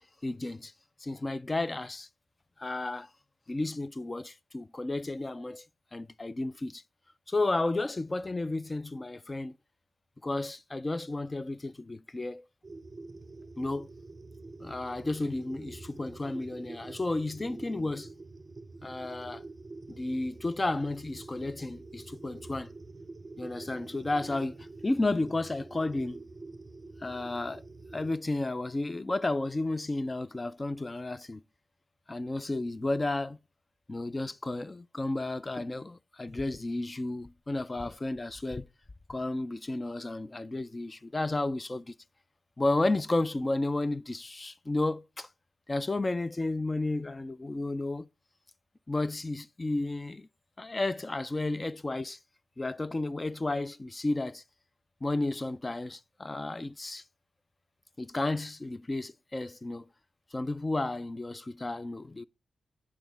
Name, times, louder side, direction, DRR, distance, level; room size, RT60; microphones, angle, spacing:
voice 1, 0.2-0.7 1.0-2.1 2.6-3.1 3.5-5.6 5.9-6.8 7.3-9.6 10.2-12.4 13.6-13.9 14.6-18.1 18.8-19.4 19.9-22.7 23.4-26.2 27.0-27.6 27.9-31.4 32.1-33.4 33.9-38.7 39.1-41.9 42.6-45.3 45.7-48.1 48.9-50.3 50.6-52.2 52.6-54.4 55.0-57.0 58.0-59.8 60.3-62.2, left 2 dB, 20° left, 0.3 m, -32 dB
sound 1, 12.6-28.1, right 3 dB, 20° right, 0.6 m, -47 dB
8.6 x 6.1 x 3.3 m
wide cardioid pair, 125°, 0 cm